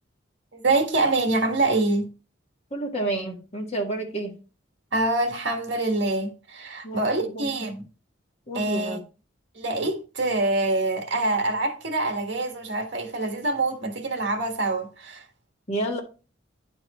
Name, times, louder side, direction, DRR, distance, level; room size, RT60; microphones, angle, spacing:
voice 1, 0.5-2.1 4.9-7.8 8.5-9.0 9.5-15.2, right 2 dB, 70° right, 1.6 m, -25 dB
voice 2, 2.7-4.4 6.8-7.4 8.5-9.0 15.7-16.0, right 2 dB, 35° left, 1.6 m, -30 dB
10.0 x 4.6 x 3.1 m
head